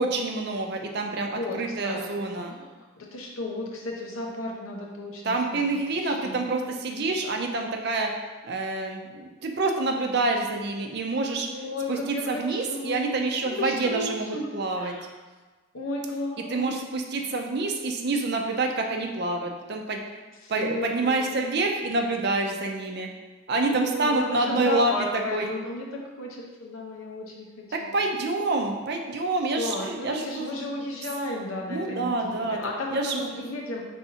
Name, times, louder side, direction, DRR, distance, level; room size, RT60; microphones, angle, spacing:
voice 1, 0.0-2.6 5.2-8.1 8.4-11.5 11.9-14.3 14.5-15.0 16.5-20.0 20.5-23.1 23.5-25.5 27.7-30.5 31.7-32.6 32.9-33.3, right 2 dB, 55° right, 3 dB, 0.5 m, -27 dB
voice 2, 1.3-2.2 2.5-2.7 3.0-6.5 6.9-7.0 11.5-13.1 13.4-15.1 15.7-16.7 20.4-21.5 23.7-27.9 29.6-33.9, left 2 dB, 90° left, -1 dB, 0.8 m, -34 dB
5.5 x 3.4 x 2.8 m, 1.3 s
head